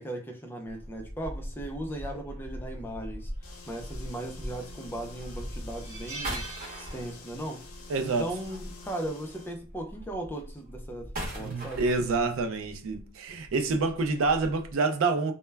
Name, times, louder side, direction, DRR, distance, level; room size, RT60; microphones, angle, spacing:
voice 1, 0.0-3.3 3.7-6.5 6.8-7.6 8.0-11.9, right 1 dB, 10° left, 0.3 m, -37 dB
sound 1, 0.7-9.1 9.5-14.7, equal, 40° right, 0.9 m, -41 dB
sound 2, 3.4-9.6, left 4 dB, 75° left, 0.5 m, -49 dB
sound 3, 5.7-7.5 7.8-8.0 9.3-9.6, right 2 dB, 15° right, 0.7 m, -42 dB
voice 2, 7.9-8.3 11.4-15.3, right 3 dB, 65° right, 0.4 m, -27 dB
2.1 x 2.0 x 3.2 m
head